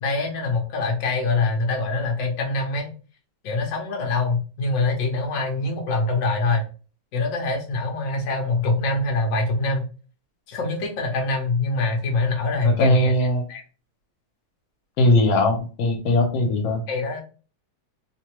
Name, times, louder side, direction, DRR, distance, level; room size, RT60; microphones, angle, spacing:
voice 1, 0.0-2.9 3.4-6.7 7.1-9.9 10.5-13.1 13.5-13.6 16.9-17.2, left 3 dB, 55° left, 1 dB, 1.0 m, -24 dB
voice 2, 12.6-13.4 15.0-16.8, left 1 dB, 75° left, 3 dB, 1.4 m, -20 dB
3.2 x 2.1 x 2.9 m, 0.36 s
omnidirectional pair, 2.2 m